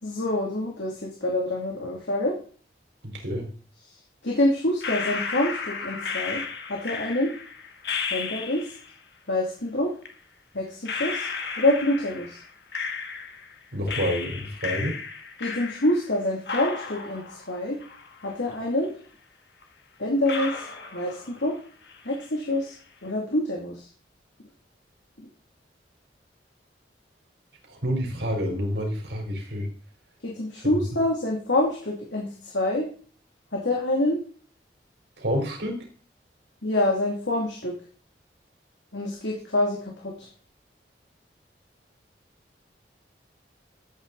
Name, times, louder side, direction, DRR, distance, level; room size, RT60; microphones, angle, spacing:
voice 1, 0.0-2.3 4.2-6.4 6.7-7.3 8.1-8.6 9.3-9.9 10.5-11.3 11.6-12.4 15.4-17.8 18.2-18.9 20.0-20.6 20.9-21.5 22.0-22.7 23.0-23.8 30.2-32.9 33.5-34.2 36.6-37.7 38.9-39.8 40.0-40.3, left 1 dB, 80° left, -1 dB, 2.7 m, -26 dB
voice 2, 3.0-3.5 13.7-15.0 27.7-29.7 35.2-35.8, equal, 80° right, 1 dB, 4.4 m, -28 dB
sound 1, 4.8-8.9 10.0-10.1 10.9-13.5 13.9-16.2 16.5-18.5 18.8-18.9 19.6-19.7 20.3-21.6 21.9-22.4, left 5 dB, 65° left, 1.8 m, -34 dB
14.0 x 8.7 x 4.1 m, 0.42 s
head